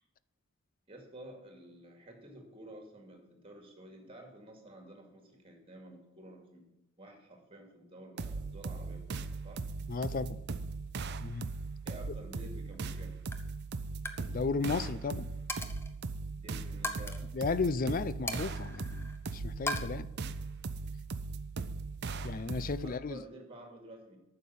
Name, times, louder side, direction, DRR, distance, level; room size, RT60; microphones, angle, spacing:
voice 1, 0.9-6.6 7.0-9.6 11.8-13.2 16.3-17.2 22.8-24.2, right 1 dB, 25° right, 2.4 m, -51 dB
sound 1, 8.2-23.0, right 4 dB, 55° right, 0.6 m, -39 dB
voice 2, 9.9-10.4 11.2-11.5 14.3-15.3 17.3-20.1 22.2-23.2, left 4 dB, 40° left, 0.4 m, -34 dB
Coin (dropping), 12.7-13.0 13.3-13.5 13.9-14.2 14.5-14.8 15.5-15.9 16.8-17.2 18.3-19.2 19.7-19.8, left 2 dB, 10° left, 0.8 m, -38 dB
9.2 x 6.7 x 8.5 m
head